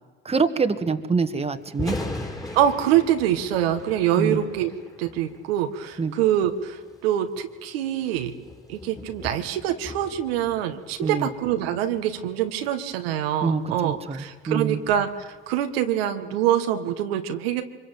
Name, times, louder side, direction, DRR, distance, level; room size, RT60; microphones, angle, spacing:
voice 1, 0.3-1.9 4.2-4.4 6.0-6.1 11.0-11.3 13.4-14.8, right 5 dB, 20° right, 8 dB, 1.9 m, -25 dB
Thunder, 1.6-15.8, left 2 dB, 10° left, 4.1 m, -40 dB
voice 2, 2.5-4.7 5.0-8.3 8.7-17.6, right 11 dB, 85° right, 6 dB, 1.7 m, -25 dB
24.5 x 22.5 x 9.1 m, 1.4 s
supercardioid pair, 80°, 29 cm